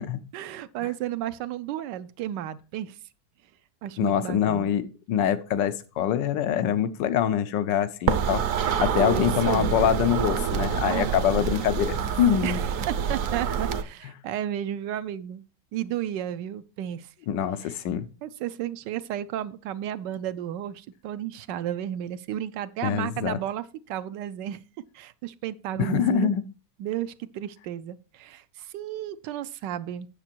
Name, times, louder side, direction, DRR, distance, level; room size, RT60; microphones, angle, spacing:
voice 1, 0.3-3.0 3.8-4.7 9.0-9.7 10.8-11.2 12.4-15.4 15.7-17.1 17.6-17.8 18.2-26.3 26.8-30.1, right 11 dB, 85° right, 1.3 m, -33 dB
voice 2, 4.0-8.4 8.8-12.6 17.3-18.1 22.8-23.4 25.8-26.4, left 9 dB, 90° left, 1.4 m, -24 dB
sound 1, 8.1-13.8, right 7 dB, 60° right, 0.9 m, -27 dB
8.6 x 6.7 x 4.4 m
omnidirectional pair, 1.9 m